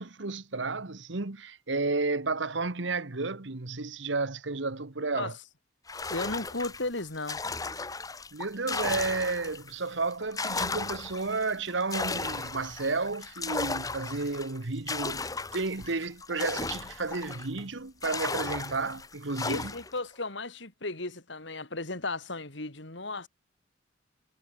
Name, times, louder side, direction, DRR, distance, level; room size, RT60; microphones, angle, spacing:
voice 1, 0.0-5.3 8.3-19.7, right 3 dB, 75° right, 1.3 m, -32 dB
sound 1, 5.9-9.7 10.1-17.6 18.0-20.0, left 4 dB, 20° left, 1.1 m, -35 dB
voice 2, 6.1-7.4 19.4-23.3, left 2 dB, 70° left, 3.3 m, -35 dB
head